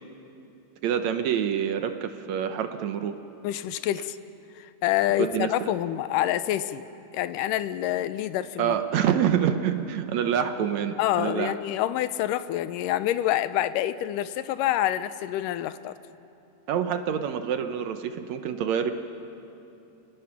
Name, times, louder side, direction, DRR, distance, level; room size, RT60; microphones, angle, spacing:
voice 1, 0.8-3.1 5.2-5.7 8.6-11.5 16.7-18.9, right 8 dB, 70° right, 8 dB, 1.8 m, -26 dB
voice 2, 3.4-4.2 4.6-6.8 7.1-8.8 11.0-15.9, left 13 dB, 80° left, 13 dB, 2.2 m, -27 dB
30.0 x 19.5 x 5.9 m, 2.9 s
omnidirectional pair, 3.9 m